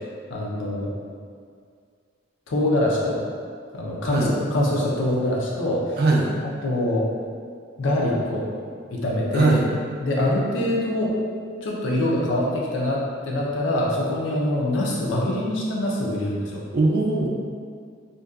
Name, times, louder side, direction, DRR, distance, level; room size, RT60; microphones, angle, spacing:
voice 1, 0.3-0.9 2.5-3.2 3.7-6.0 6.6-7.1 7.8-8.4 8.9-9.5 10.0-11.1 11.6-16.6, left 1 dB, 75° left, -4 dB, 0.5 m, -24 dB
voice 2, 6.0-6.3 9.3-9.6 16.7-17.3, right 3 dB, 50° right, -2 dB, 0.3 m, -20 dB
2.6 x 2.1 x 2.3 m, 2.1 s
head